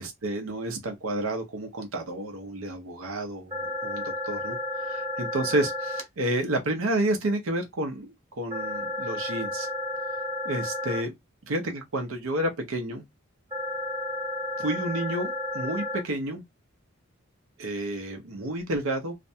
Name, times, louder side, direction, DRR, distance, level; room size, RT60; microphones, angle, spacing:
voice 1, 0.0-9.7 10.4-11.1 11.5-11.6 11.9-13.0 14.6-16.4 17.6-19.1, right 1 dB, 85° right, 0.6 m, -30 dB
sound 1, 3.5-6.0 8.5-11.0 13.5-16.0, left 2 dB, 20° right, 0.9 m, -32 dB
2.5 x 2.1 x 2.6 m
head